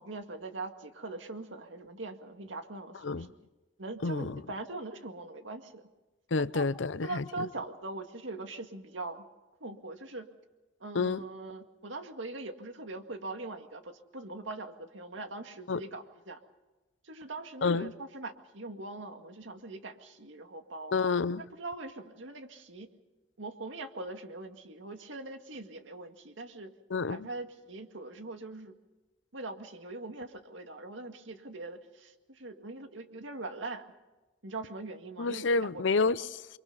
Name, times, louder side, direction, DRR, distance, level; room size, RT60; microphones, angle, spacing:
voice 1, 0.0-3.3 3.8-5.9 6.5-6.7 7.0-9.3 9.6-10.3 10.8-16.4 17.0-20.9 21.4-22.9 23.4-26.7 27.1-28.7 29.3-33.9 34.4-35.8, right 2 dB, 85° right, 2.0 m, -42 dB
voice 2, 4.0-4.4 6.3-7.2 10.9-11.2 15.7-15.8 17.6-17.9 20.9-21.4 26.9-27.3 35.2-36.6, left 4 dB, 80° left, 0.6 m, -29 dB
29.5 x 24.0 x 4.1 m
head